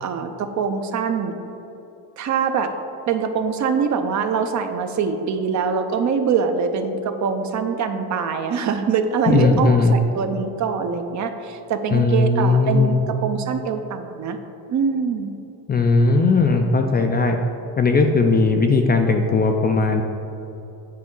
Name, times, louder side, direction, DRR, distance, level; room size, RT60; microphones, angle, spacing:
voice 1, 0.0-1.3 2.2-2.7 3.1-14.4 14.7-15.3, right 6 dB, 45° right, 7 dB, 0.6 m, -23 dB
voice 2, 9.3-9.9 11.9-13.0 15.7-17.4 17.8-20.0, left 3 dB, 25° left, 4 dB, 0.3 m, -18 dB
8.6 x 4.9 x 3.7 m, 3.0 s
cardioid pair, 115°, 41 cm